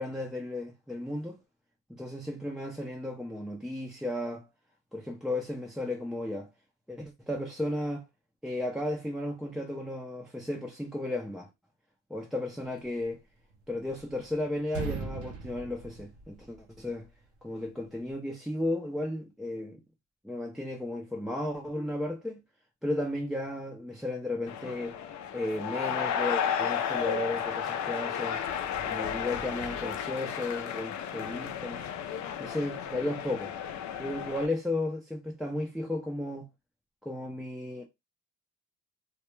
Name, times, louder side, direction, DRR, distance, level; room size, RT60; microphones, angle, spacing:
voice 1, 0.0-1.4 1.9-4.5 4.9-6.5 6.9-8.0 8.4-11.5 12.1-13.2 13.7-17.1 17.4-19.8 20.2-22.4 22.8-25.0 25.3-28.4 28.9-31.8 32.4-33.5 34.0-36.5 37.0-37.8, left 1 dB, ahead, 0.4 m, -34 dB
sound 1, 13.5-14.3 14.6-16.8, right 5 dB, 80° right, 0.8 m, -39 dB
sound 2, 24.5-34.5, left 8 dB, 70° left, 0.5 m, -33 dB
2.2 x 2.1 x 3.0 m
cardioid pair, 90°, 30 cm